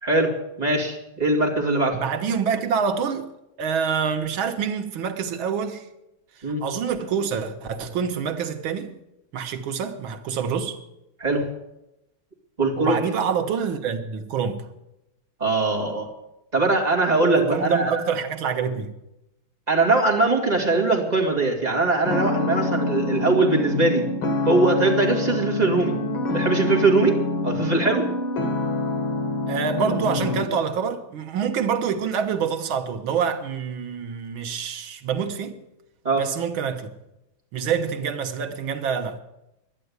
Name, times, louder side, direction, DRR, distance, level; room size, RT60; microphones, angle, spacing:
voice 1, 0.0-2.0 6.4-6.6 11.2-11.4 12.6-13.1 15.4-16.1 16.5-17.9 19.7-24.1 24.4-26.0 26.3-28.1 36.0-36.3, right 3 dB, 20° right, 2.4 m, -21 dB
voice 2, 1.9-3.3 3.6-5.9 6.6-8.9 9.3-10.8 12.8-14.7 17.3-19.0 29.5-35.6 36.1-36.9 37.5-39.2, right 6 dB, 75° right, 1.9 m, -26 dB
sound 1, 22.0-30.5, left 2 dB, 75° left, 2.3 m, -26 dB
11.5 x 10.0 x 9.5 m
omnidirectional pair, 2.2 m